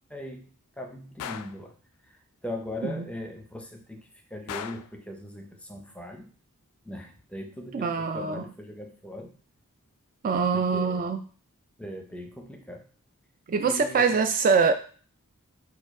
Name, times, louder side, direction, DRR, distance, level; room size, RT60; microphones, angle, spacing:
voice 1, 0.1-0.4 0.8-1.7 2.0-6.3 6.8-9.3 10.3-11.0 11.8-12.8 13.6-14.2, left 1 dB, 5° left, 2 dB, 0.6 m, -39 dB
Gunshot gunfire, 1.2-1.6 4.5-5.0, left 8 dB, 90° left, 0.3 m, -37 dB
voice 2, 7.7-8.4 10.2-11.2 13.5-14.7, right 5 dB, 40° right, 7 dB, 0.3 m, -24 dB
4.8 x 2.3 x 4.6 m, 0.41 s
head